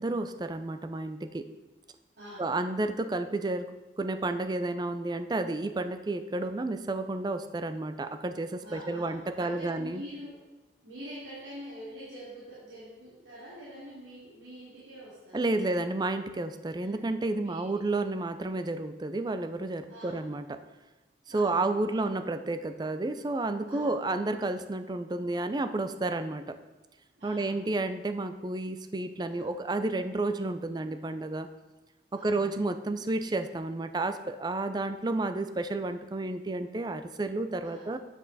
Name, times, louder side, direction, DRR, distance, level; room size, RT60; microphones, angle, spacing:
voice 1, 0.0-1.5 2.4-3.7 4.0-10.0 15.3-20.6 21.3-26.5 27.2-31.5 32.1-38.0, right 2 dB, 25° right, 9 dB, 0.4 m, -31 dB
voice 2, 2.2-2.7 8.6-10.4 10.8-15.7 16.8-17.0 17.4-17.7 19.9-20.4 21.3-22.1 23.6-24.1 27.2-27.7 29.3-29.5 32.1-32.6 37.6-37.9, equal, 80° right, -9 dB, 2.5 m, -46 dB
8.5 x 7.8 x 4.1 m, 1.1 s
head